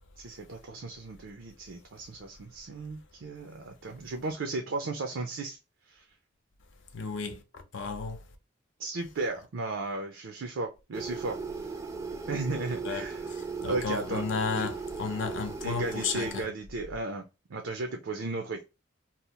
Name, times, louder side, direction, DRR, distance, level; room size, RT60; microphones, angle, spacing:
voice 1, 0.2-5.6 5.9-6.0 8.8-11.4 12.3-13.2 13.7-14.2 14.5-14.7 15.6-17.2 17.5-18.6, right 3 dB, 90° right, 0.5 m, -35 dB
voice 2, 6.9-8.2 12.8-13.0 13.3-16.5, left 5 dB, 80° left, 0.6 m, -33 dB
sound 1, 10.9-16.4, right 4 dB, 15° right, 0.3 m, -37 dB
2.8 x 2.0 x 2.8 m
head